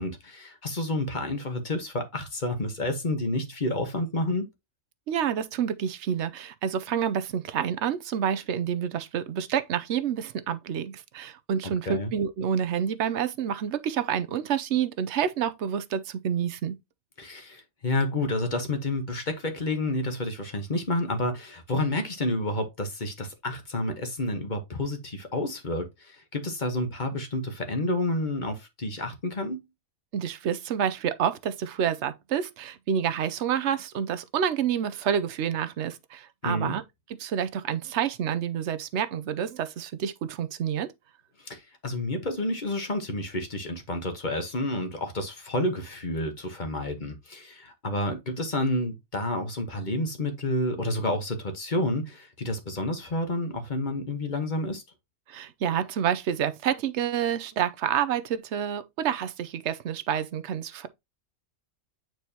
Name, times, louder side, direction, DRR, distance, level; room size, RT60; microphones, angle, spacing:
voice 1, 0.0-4.5 11.9-12.1 17.2-29.6 36.4-36.8 41.4-54.8, left 1 dB, 40° left, 1.3 m, -30 dB
voice 2, 5.1-16.8 30.1-36.8 37.2-40.9 55.3-60.9, right 8 dB, 65° right, 0.9 m, -28 dB
8.6 x 4.6 x 2.8 m
omnidirectional pair, 1.3 m